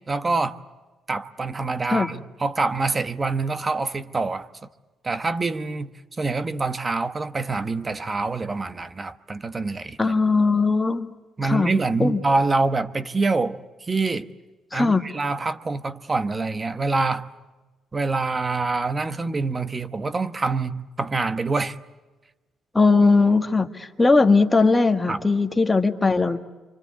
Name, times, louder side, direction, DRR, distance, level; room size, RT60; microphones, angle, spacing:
voice 1, 0.1-0.6 1.1-4.5 5.0-5.9 6.2-10.1 11.4-14.3 14.7-17.3 17.9-21.8 25.1-25.2, right 3 dB, 30° right, 1.1 m, -25 dB
voice 2, 10.0-11.1 11.4-11.7 12.0-12.2 14.7-15.0 22.7-26.4, left 3 dB, 15° left, 1.6 m, -19 dB
27.5 x 25.0 x 8.4 m
cardioid pair, 90°, 0 cm